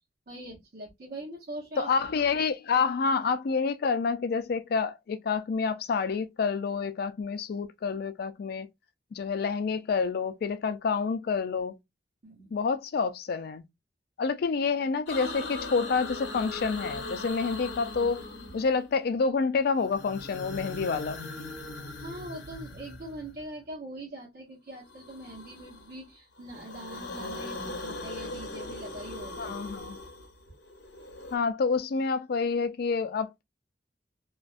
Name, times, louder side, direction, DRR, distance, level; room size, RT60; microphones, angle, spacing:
voice 1, 0.3-1.9 12.2-12.6 22.0-29.5, right 1 dB, 60° right, 0.9 m, -42 dB
voice 2, 1.8-8.7 9.1-11.8 12.5-13.6 14.2-18.2 18.5-21.2 29.4-30.0 31.3-33.5, left 5 dB, 60° left, 0.4 m, -28 dB
sound 1, 15.1-19.0 19.8-23.5 24.9-26.0 26.4-31.4, left 2 dB, 75° left, 0.8 m, -40 dB
2.4 x 2.1 x 2.3 m
head